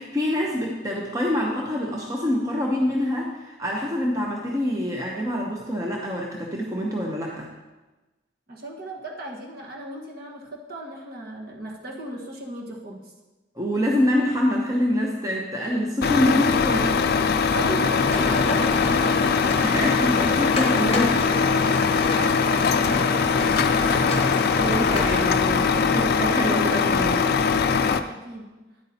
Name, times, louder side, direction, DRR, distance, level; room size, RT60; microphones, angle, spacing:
voice 1, 0.0-7.5 13.6-17.0 19.6-21.3 24.6-27.4, left 1 dB, 15° right, -2 dB, 0.7 m, -26 dB
voice 2, 8.5-13.1 17.5-19.4 22.1-24.2 28.1-28.5, right 1 dB, 50° right, -2 dB, 1.4 m, -36 dB
Truck, 16.0-28.0, left 5 dB, 50° left, 0.4 m, -21 dB
sound 1, 18.0-25.2, left 2 dB, 30° left, 0.9 m, -31 dB
9.9 x 8.1 x 2.8 m, 1.1 s
head